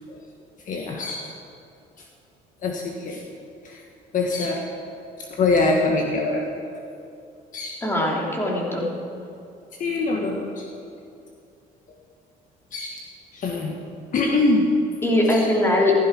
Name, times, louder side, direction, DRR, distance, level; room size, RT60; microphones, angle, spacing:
voice 1, 0.7-1.3 2.6-3.3 3.6-3.8 4.1-4.6 5.3-6.4 7.5-7.8 9.8-10.7 12.7-13.0 13.3-13.8 14.1-14.7 15.3-15.5, left 3 dB, 50° left, 1 dB, 1.6 m, -24 dB
voice 2, 7.8-8.9 15.0-15.9, left 1 dB, 15° left, -3 dB, 3.2 m, -21 dB
15.5 x 15.0 x 4.6 m, 2.6 s
cardioid pair, 110°, 17 cm